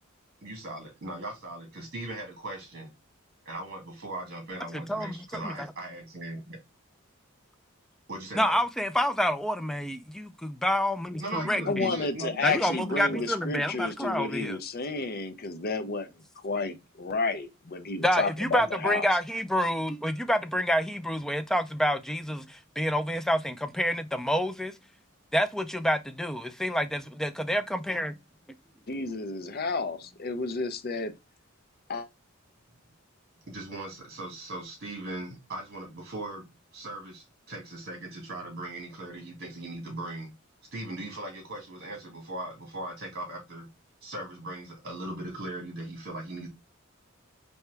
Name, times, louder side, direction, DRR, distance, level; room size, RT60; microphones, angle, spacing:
voice 1, 0.4-2.9 3.5-6.6 8.1-8.6 11.2-12.5 12.9-13.2 18.6-18.7 33.5-40.3 40.7-43.7 44.0-46.5, right 2 dB, 50° right, 1.9 m, -39 dB
voice 2, 4.7-5.7 8.3-11.9 12.4-14.6 18.0-24.7 25.3-28.1, equal, ahead, 0.3 m, -28 dB
voice 3, 11.7-16.1 16.4-19.1 28.9-31.1 31.9-32.1, left 3 dB, 45° left, 0.6 m, -31 dB
4.5 x 2.8 x 3.3 m
head